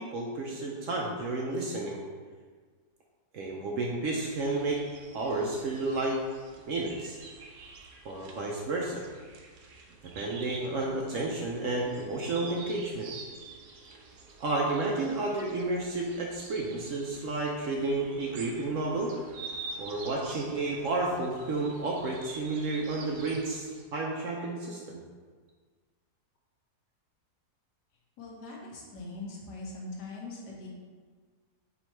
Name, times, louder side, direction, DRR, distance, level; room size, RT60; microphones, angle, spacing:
voice 1, 0.0-2.0 3.3-4.8 5.1-6.2 6.7-7.2 8.0-9.0 10.0-13.1 14.4-19.1 19.8-23.7 23.9-25.0, right 2 dB, 70° right, -2 dB, 0.8 m, -31 dB
sound 1, 4.2-23.9, right 4 dB, 85° right, 1.2 m, -48 dB
voice 2, 28.2-30.7, left 2 dB, 85° left, -2 dB, 1.5 m, -41 dB
3.6 x 3.0 x 4.4 m, 1.5 s
omnidirectional pair, 1.7 m